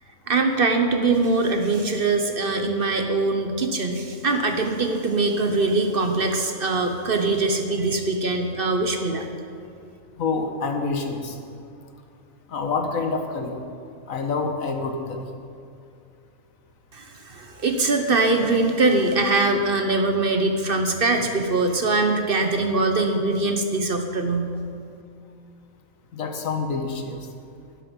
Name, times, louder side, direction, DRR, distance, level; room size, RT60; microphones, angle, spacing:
voice 1, 0.3-9.3 16.9-24.5, right 3 dB, 45° right, 5 dB, 1.0 m, -22 dB
voice 2, 10.2-11.4 12.5-13.5 14.1-15.3 26.1-27.3, left 4 dB, 75° left, 4 dB, 1.5 m, -27 dB
12.5 x 11.0 x 5.3 m, 2.4 s
omnidirectional pair, 1.4 m